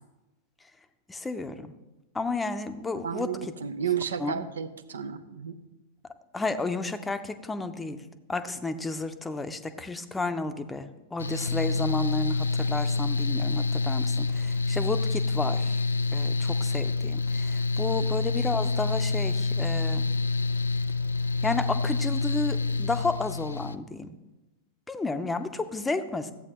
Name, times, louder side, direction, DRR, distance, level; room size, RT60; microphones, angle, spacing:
voice 1, 1.1-1.7 2.1-3.5 4.2-4.4 6.3-8.0 8.3-15.7 16.1-20.1 21.4-24.2 24.9-26.3, left 3 dB, 10° left, 9 dB, 0.7 m, -32 dB
voice 2, 3.0-5.6 18.0-18.1, right 8 dB, 75° right, 10 dB, 0.7 m, -32 dB
Mechanical fan, 11.2-23.7, left 3 dB, 80° left, 0.3 m, -27 dB
14.0 x 8.3 x 3.0 m, 1.0 s
figure-of-eight pair, 95°, 0 cm